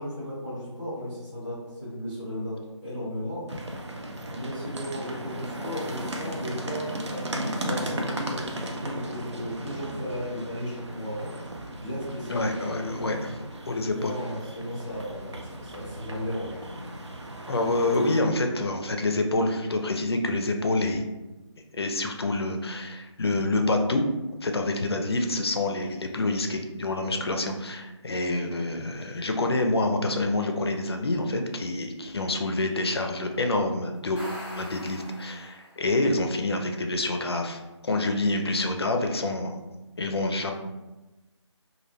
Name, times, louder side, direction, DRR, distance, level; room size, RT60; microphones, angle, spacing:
voice 1, 0.0-2.5 2.8-3.4 4.3-11.3 11.8-13.1 13.9-16.6 27.0-27.2, equal, 5° right, -19 dB, 0.6 m, -35 dB
sound 1, 3.5-18.2, right 1 dB, 70° right, 0.5 m, -36 dB
voice 2, 12.3-13.2 13.7-14.1 17.5-21.0 21.7-24.0 24.4-34.2 34.5-39.6 40.0-40.5, left 2 dB, 55° left, 4 dB, 0.4 m, -27 dB
sound 2, 34.0-35.9, equal, 20° left, 0.8 m, -42 dB
2.2 x 2.1 x 3.2 m, 1.1 s
figure-of-eight pair, 170°, 15 cm